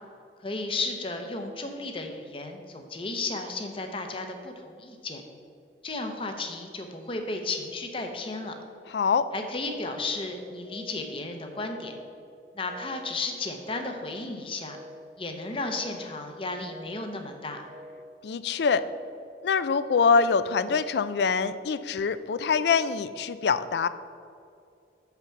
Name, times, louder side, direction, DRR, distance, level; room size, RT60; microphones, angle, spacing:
voice 1, 0.4-5.2 5.8-8.5 9.3-11.9 12.5-14.8 15.2-17.6, left 3 dB, 30° left, 5 dB, 0.7 m, -34 dB
voice 2, 8.9-9.3 18.2-18.9 19.4-23.9, left 5 dB, 65° left, 14 dB, 0.4 m, -24 dB
sound 1, 9.6-10.1 10.6-11.1 11.6-12.1 12.6-13.1 13.6-14.1 14.6-15.1 15.6-16.1 16.6-17.1 17.6-18.1 18.6-19.1, equal, 30° right, 1.0 m, -46 dB
6.7 x 5.8 x 5.9 m, 2.5 s
head